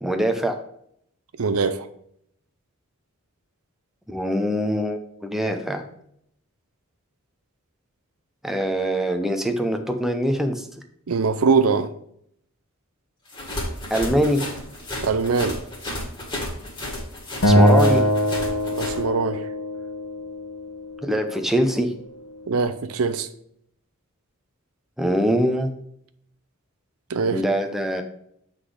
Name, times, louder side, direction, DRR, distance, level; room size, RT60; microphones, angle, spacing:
voice 1, 0.0-0.6 4.1-5.8 8.4-10.7 13.9-14.4 17.4-18.1 21.0-21.9 25.0-25.7 27.3-28.0, equal, ahead, 4 dB, 0.6 m, -23 dB
voice 2, 1.4-1.9 11.1-11.9 15.0-15.6 18.8-19.4 22.5-23.3 27.1-27.4, right 5 dB, 80° right, 11 dB, 0.6 m, -22 dB
sound 1, 13.3-19.0, left 1 dB, 20° left, 1.8 m, -32 dB
Acoustic guitar, 17.4-20.7, equal, 75° left, 1.1 m, -20 dB
8.0 x 4.0 x 4.9 m, 0.70 s
head